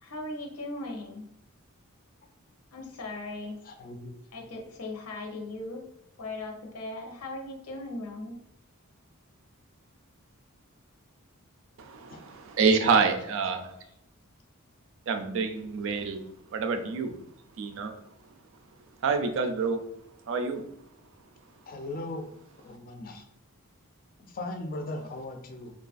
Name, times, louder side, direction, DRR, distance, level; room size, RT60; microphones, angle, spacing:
voice 1, 0.0-1.3 2.7-3.6 4.3-5.9 6.2-8.4 13.0-14.0, left 2 dB, 85° left, 2 dB, 0.7 m, -39 dB
voice 2, 3.6-4.1 12.1-12.2 21.7-22.3 22.6-23.3 24.2-25.7, left 2 dB, 40° left, 4 dB, 0.4 m, -38 dB
voice 3, 11.8-13.7 15.1-16.2 16.5-17.2 17.6-17.9 19.0-19.8 20.3-20.6, right 5 dB, 60° right, 6 dB, 0.4 m, -27 dB
3.1 x 2.3 x 2.4 m, 0.78 s
head